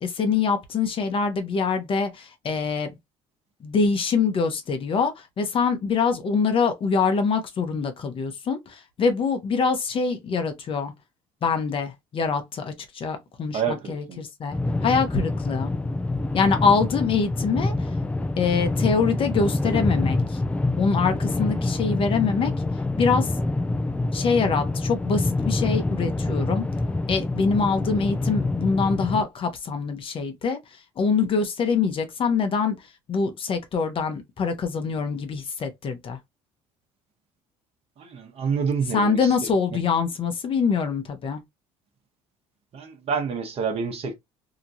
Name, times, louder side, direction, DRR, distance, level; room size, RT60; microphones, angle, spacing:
voice 1, 0.0-2.9 3.6-10.9 11.4-15.7 16.3-17.9 18.4-20.4 20.8-22.5 23.0-23.3 24.1-26.6 27.1-30.6 31.0-32.8 33.1-36.2 38.9-41.4, left 5 dB, 45° left, 0.8 m, -24 dB
voice 2, 13.5-14.2 38.0-39.3 42.7-44.1, right 6 dB, 50° right, 1.1 m, -28 dB
sound 1, 14.5-29.2, left 2 dB, 10° left, 0.4 m, -26 dB
2.9 x 2.3 x 2.7 m
supercardioid pair, 80°, 13 cm